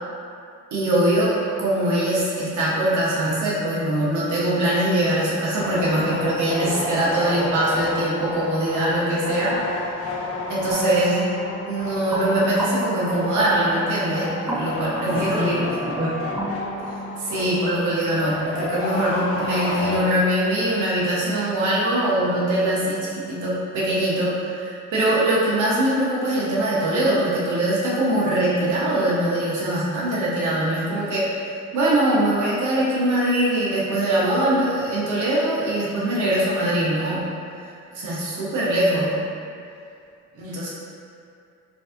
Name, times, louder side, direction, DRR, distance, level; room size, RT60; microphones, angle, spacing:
voice 1, 0.7-10.0 10.5-11.2 11.7-15.6 17.2-31.3 31.7-37.2 37.9-39.1 40.3-40.7, right 1 dB, 75° right, -7 dB, 1.0 m, -22 dB
sound 1, 5.5-20.5, left 2 dB, 50° left, 0.6 m, -31 dB
sound 2, 10.7-18.3, right 1 dB, 10° right, 0.6 m, -33 dB
voice 2, 15.0-16.4 40.4-40.5, left 1 dB, 50° right, -6 dB, 0.9 m, -27 dB
5.1 x 2.6 x 2.5 m, 2.4 s
cardioid pair, 90°, 30 cm